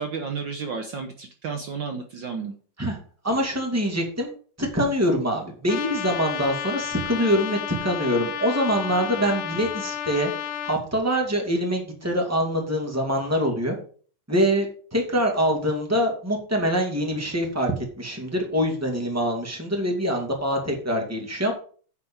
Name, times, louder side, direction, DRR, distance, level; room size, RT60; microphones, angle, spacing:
voice 1, 0.0-2.5, right 5 dB, 85° right, 5 dB, 1.0 m, -32 dB
voice 2, 3.2-4.3 4.6-10.3 10.6-13.7 14.3-14.6 14.9-17.7 18.0-21.5, equal, 5° right, 1 dB, 1.7 m, -24 dB
Trumpet, 5.7-10.8, left 9 dB, 75° left, 1.2 m, -32 dB
9.3 x 5.0 x 7.1 m, 0.43 s
omnidirectional pair, 3.7 m